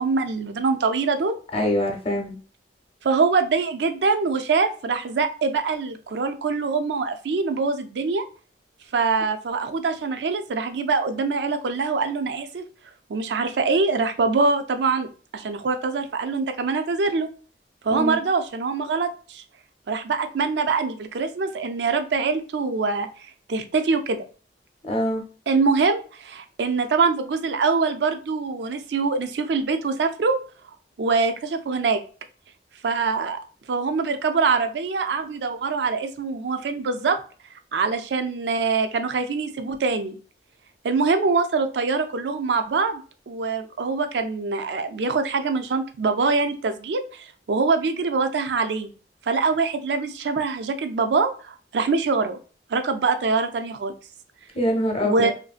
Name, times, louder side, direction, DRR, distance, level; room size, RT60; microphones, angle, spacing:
voice 1, 0.0-1.3 3.0-8.2 8.9-12.6 13.1-15.1 15.3-17.3 17.8-19.4 19.9-24.2 25.5-30.4 31.0-32.0 32.8-33.4 33.7-37.2 37.7-40.2 40.8-43.0 43.3-48.9 49.3-52.4 52.7-53.9 55.0-55.3, right 4 dB, 70° right, 8 dB, 0.4 m, -24 dB
voice 2, 1.5-2.4 17.9-18.2 24.8-25.2 54.5-55.3, left 1 dB, 35° left, 2 dB, 0.7 m, -24 dB
3.1 x 2.6 x 2.4 m, 0.38 s
head